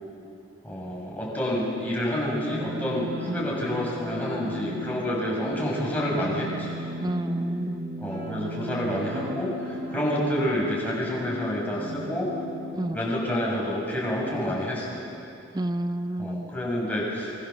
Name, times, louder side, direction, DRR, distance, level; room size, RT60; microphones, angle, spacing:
voice 1, 0.6-6.9 8.0-12.3 12.9-15.0 16.2-17.3, equal, 10° left, -4 dB, 6.7 m, -28 dB
sound 1, 2.4-12.8, equal, 50° right, 4.0 m, -36 dB
voice 2, 7.0-7.9 12.8-13.0 15.5-16.5, right 1 dB, 20° right, 11 dB, 0.7 m, -29 dB
28.0 x 24.0 x 7.3 m, 2.7 s
head